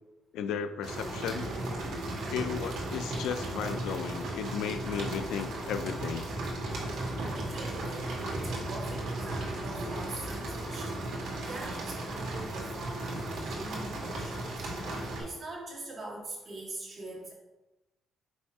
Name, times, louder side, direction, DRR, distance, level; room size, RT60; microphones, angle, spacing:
voice 1, 0.3-1.5 2.3-6.3, left 8 dB, 85° left, 10 dB, 0.5 m, -35 dB
sound 1, 0.8-15.2, right 2 dB, 75° right, 2.1 m, -35 dB
voice 2, 7.1-17.3, right 2 dB, 45° right, -3 dB, 1.7 m, -43 dB
5.5 x 4.3 x 4.6 m, 1.0 s
cardioid pair, 90°, 0 cm